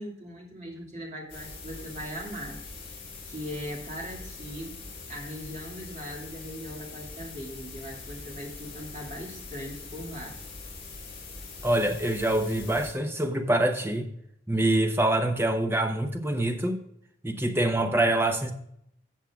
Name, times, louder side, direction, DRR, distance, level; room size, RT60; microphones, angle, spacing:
voice 1, 0.0-2.6 3.2-10.4, equal, 35° right, 2.2 m, -39 dB
sound 1, 1.3-12.9, left 3 dB, 30° left, 3.5 m, -43 dB
voice 2, 11.6-14.1 14.5-16.8 17.2-18.5, right 1 dB, 10° right, 0.7 m, -25 dB
14.5 x 7.3 x 2.3 m
head